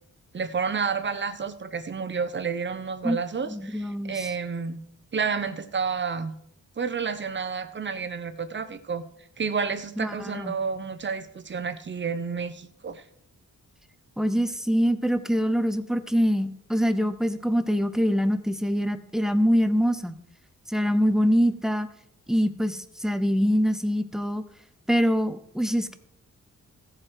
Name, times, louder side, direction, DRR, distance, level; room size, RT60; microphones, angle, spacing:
voice 1, 0.3-4.8 5.1-6.3 6.8-9.0 9.4-13.0, right 5 dB, 35° right, 12 dB, 0.9 m, -30 dB
voice 2, 3.5-4.3 10.0-10.6 14.2-20.1 20.7-21.9 22.3-24.4 24.9-25.9, equal, ahead, 11 dB, 0.7 m, -24 dB
16.0 x 7.7 x 4.7 m, 0.68 s
wide cardioid pair, 160°, 31 cm